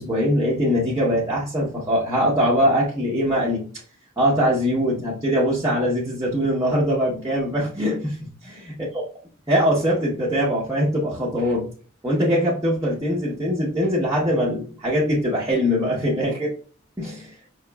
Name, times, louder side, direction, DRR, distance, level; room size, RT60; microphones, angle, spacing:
voice 1, 0.0-3.6 4.2-8.7 9.5-11.7 12.0-16.5 17.0-17.4, equal, 15° right, -6 dB, 0.8 m, -22 dB
5.6 x 3.0 x 2.2 m, 0.42 s
head